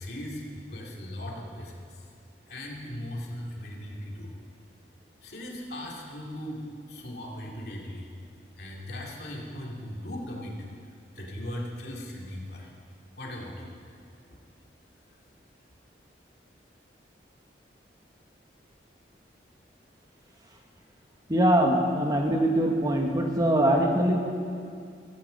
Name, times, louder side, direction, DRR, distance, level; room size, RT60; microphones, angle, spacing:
voice 1, 0.0-2.1 2.5-4.3 5.2-8.1 8.6-10.5 11.1-12.7 13.2-13.7 14.3-14.4, left 1 dB, 60° left, -2 dB, 2.6 m, -38 dB
voice 2, 21.3-24.2, right 1 dB, 20° right, 1 dB, 1.3 m, -23 dB
16.0 x 15.5 x 5.3 m, 2.3 s
head